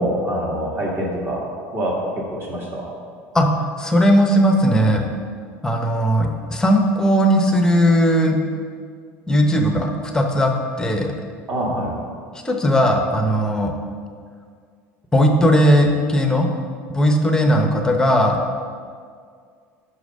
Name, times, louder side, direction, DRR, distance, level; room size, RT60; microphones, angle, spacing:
voice 1, 0.0-1.4 1.7-2.9 11.5-12.0, right 1 dB, 30° right, -3 dB, 1.7 m, -25 dB
voice 2, 3.8-5.0 5.6-8.4 9.3-10.5 10.8-11.1 12.4-13.7 15.1-16.5 16.9-18.4, equal, 10° left, 3 dB, 0.8 m, -17 dB
5.8 x 4.8 x 5.3 m, 2.1 s
supercardioid pair, 110°, 7 cm